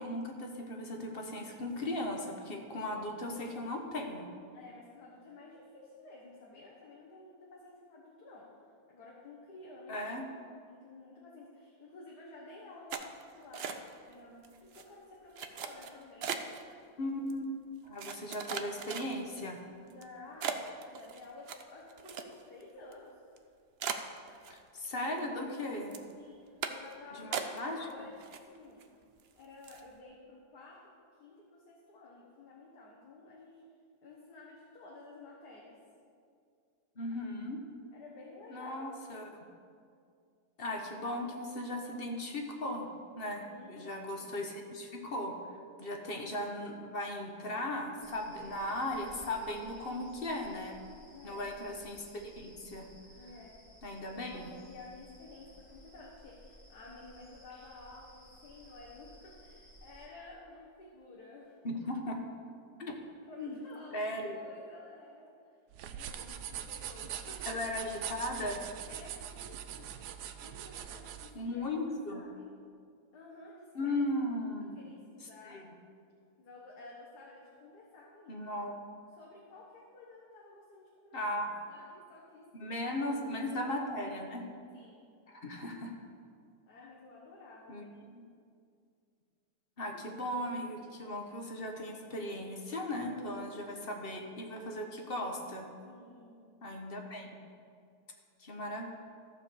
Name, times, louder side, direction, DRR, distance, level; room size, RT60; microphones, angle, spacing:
voice 1, 0.0-4.3 9.9-10.3 17.0-17.5 17.8-19.6 24.5-26.0 27.1-27.9 37.0-37.6 38.5-39.3 40.6-50.8 51.2-52.1 52.4-52.9 53.8-54.5 61.6-62.2 62.8-62.9 63.4-63.6 63.9-64.4 67.5-68.6 71.3-72.3 73.7-74.8 75.2-75.7 78.3-78.7 81.1-81.6 82.6-84.5 85.3-85.9 86.8-86.9 87.7-88.2 89.8-95.7 96.6-97.4 98.4-98.9, left 1 dB, 40° left, 2 dB, 1.1 m, -37 dB
voice 2, 4.5-8.5 8.9-10.3 10.7-16.5 19.8-23.2 26.1-28.8 29.4-30.9 31.2-33.6 34.0-35.8 37.9-38.8 43.4-44.4 51.1-51.5 53.2-53.6 54.1-61.6 63.3-65.3 65.9-67.5 68.9-70.0 70.4-71.7 72.1-72.5 73.1-74.0 74.3-75.6 76.4-78.4 79.2-81.2 81.7-83.0 84.7-85.1 86.7-87.9 95.8-96.5 98.5-98.7, left 3 dB, 75° left, -3 dB, 1.8 m, -53 dB
sound 1, 12.9-14.1 14.4-14.8 15.4-16.6 17.3-17.4 18.0-19.4 19.9-20.0 20.4-22.6 22.9-23.0 23.4-23.5 23.8-24.9 25.2-25.6 25.9-26.1 26.6-26.9 27.3-27.9 28.2-28.8 29.2-29.3 29.6-29.9, right 7 dB, 65° right, 0.6 m, -39 dB
sound 2, 48.0-60.1, equal, 15° left, 2.1 m, -57 dB
sound 3, 65.7-71.3, right 9 dB, 80° right, 1.2 m, -42 dB
14.0 x 4.6 x 6.9 m, 2.3 s
omnidirectional pair, 1.7 m